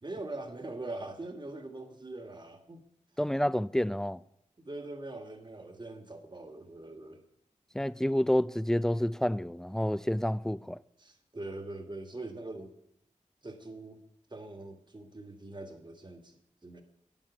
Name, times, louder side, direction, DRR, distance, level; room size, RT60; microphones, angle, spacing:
voice 1, 0.0-2.8 4.6-7.2 11.0-12.7 13.4-14.0 14.3-16.8, right 2 dB, 35° right, 1.6 m, -42 dB
voice 2, 3.2-4.2 7.7-10.8, equal, 5° left, 0.3 m, -29 dB
9.3 x 7.3 x 6.0 m
wide cardioid pair, 55°, 13 cm